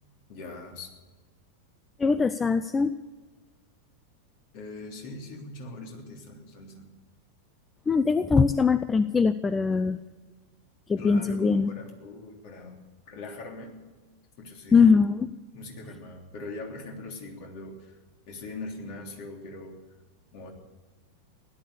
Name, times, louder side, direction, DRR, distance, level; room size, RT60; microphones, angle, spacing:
voice 1, 0.3-0.9 4.5-6.9 11.0-12.8 13.1-13.8 14.4-14.9 15.5-18.0 18.3-19.8 20.3-20.5, left 2 dB, 45° left, 2 dB, 3.4 m, -41 dB
voice 2, 2.0-2.9 7.9-10.0 10.9-11.7 14.7-15.3, left 5 dB, 15° left, 14 dB, 0.5 m, -22 dB
17.0 x 12.0 x 6.9 m, 1.3 s
figure-of-eight pair, 90°, 0 cm